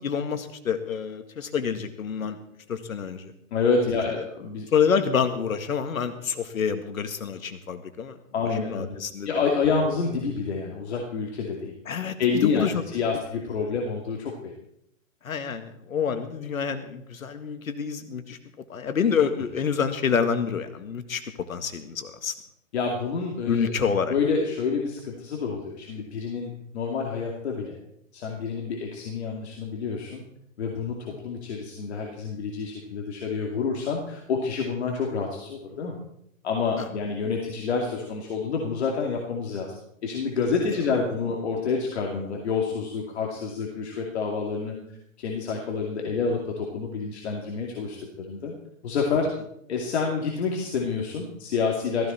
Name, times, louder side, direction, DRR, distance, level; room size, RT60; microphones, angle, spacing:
voice 1, 0.0-2.4 2.7-3.3 4.1-4.3 4.7-8.2 8.6-9.4 11.9-12.8 13.1-13.2 15.2-18.4 18.7-21.2 21.5-22.3 23.5-24.1 36.8-36.9, left 6 dB, 85° left, 8 dB, 2.0 m, -27 dB
voice 2, 3.5-4.7 8.3-9.0 9.2-11.7 12.2-14.5 22.7-23.8 24.1-27.8 28.1-30.2 30.6-36.0 36.4-39.7 40.0-44.8 45.2-48.5 48.8-49.3 49.7-52.1, left 5 dB, 55° left, -1 dB, 2.5 m, -28 dB
15.0 x 15.0 x 4.4 m, 0.74 s
hypercardioid pair, 160°, 40 cm